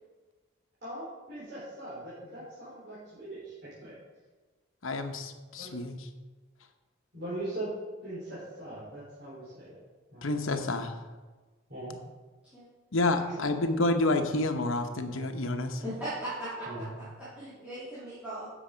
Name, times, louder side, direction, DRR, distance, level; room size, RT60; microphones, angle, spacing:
voice 1, 0.8-4.0 5.6-5.7 7.1-7.7 8.0-9.8 10.1-10.3 11.7-12.0 15.8-15.9 16.7-16.9, right 1 dB, 45° right, -10 dB, 3.8 m, -40 dB
voice 2, 4.8-6.0 10.2-10.9 12.9-15.8, left 2 dB, 70° left, 6 dB, 1.0 m, -29 dB
voice 3, 15.8-17.0 17.3-18.5, right 1 dB, 5° right, -13 dB, 3.2 m, -38 dB
10.0 x 7.1 x 5.1 m, 1.3 s
head